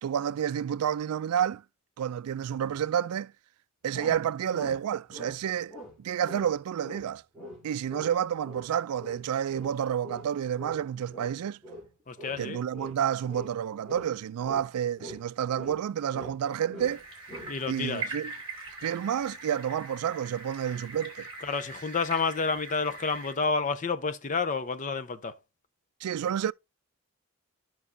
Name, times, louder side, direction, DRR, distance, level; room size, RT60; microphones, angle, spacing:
voice 1, 0.0-1.6 2.0-3.3 3.8-7.2 7.6-11.6 12.4-17.0 17.7-18.3 18.8-21.3 26.0-26.5, right 9 dB, 85° right, 0.3 m, -30 dB
sound 1, 3.9-5.4 5.7-6.0 6.3-6.6 6.8-12.5 12.7-13.6 13.8-15.3 15.5-16.4 16.7-17.0 17.3-17.6, equal, 5° left, 6.2 m, -44 dB
voice 2, 12.1-12.6 17.4-18.0 21.4-25.4, left 4 dB, 35° left, 0.5 m, -30 dB
sound 2, 16.8-23.3, right 3 dB, 20° right, 2.4 m, -42 dB
12.0 x 6.0 x 2.7 m
head